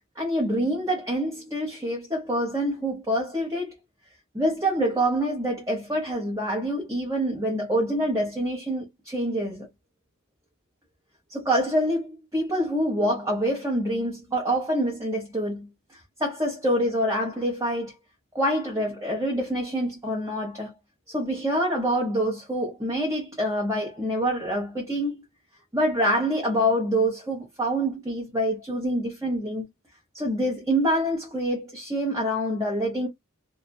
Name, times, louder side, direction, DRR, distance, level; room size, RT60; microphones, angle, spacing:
voice 1, 0.2-3.7 4.3-9.7 11.3-15.7 16.2-17.9 18.3-20.7 21.1-25.2 25.7-29.6 30.1-33.1, equal, 15° right, 0.9 m, -26 dB
2.5 x 2.5 x 2.2 m
head